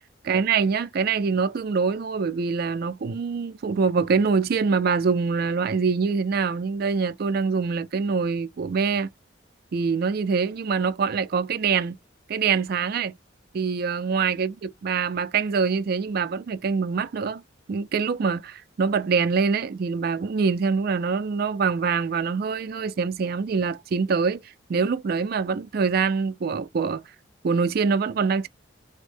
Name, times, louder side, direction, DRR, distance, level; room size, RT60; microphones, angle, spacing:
voice 1, 0.2-9.1 9.7-12.0 12.3-13.2 13.5-17.4 17.7-24.4 24.7-27.0 27.4-28.5, right 5 dB, 55° right, 0.4 m, -24 dB
3.4 x 2.1 x 3.3 m
head